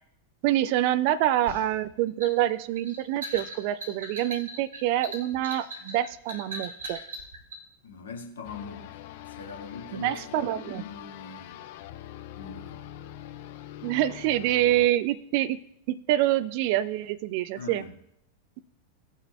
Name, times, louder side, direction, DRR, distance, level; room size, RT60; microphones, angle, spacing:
voice 1, 0.4-7.0 9.9-10.8 13.8-15.6 15.9-17.8, right 13 dB, 45° right, 0.4 m, -26 dB
sound 1, 1.5-7.6, right 1 dB, 65° right, 1.9 m, -40 dB
voice 2, 7.8-11.6 12.3-12.8 17.5-17.9, left 5 dB, 65° left, 1.5 m, -42 dB
sound 2, 8.4-14.9, left 12 dB, 50° left, 0.5 m, -44 dB
17.5 x 6.0 x 2.2 m
figure-of-eight pair, 90°, 0 cm